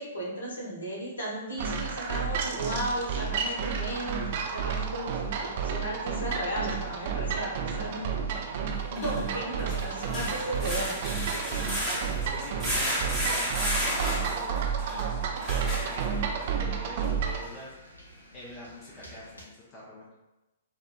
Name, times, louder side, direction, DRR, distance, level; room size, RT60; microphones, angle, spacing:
voice 1, 0.0-5.1 5.4-8.1 8.9-11.0, equal, 70° left, -5 dB, 1.0 m, -35 dB
sound 1, 1.6-17.5, right 6 dB, 45° right, 0.3 m, -31 dB
sound 2, 2.3-19.4, equal, 85° left, 0.6 m, -50 dB
sound 3, 6.3-6.4 8.8-16.4 17.0-17.1 17.6-17.7, equal, ahead, 0.8 m, -33 dB
voice 2, 11.4-18.0 18.3-20.1, left 2 dB, 25° left, -5 dB, 0.5 m, -45 dB
2.8 x 2.1 x 2.3 m, 1.0 s
figure-of-eight pair, 110°, 0 cm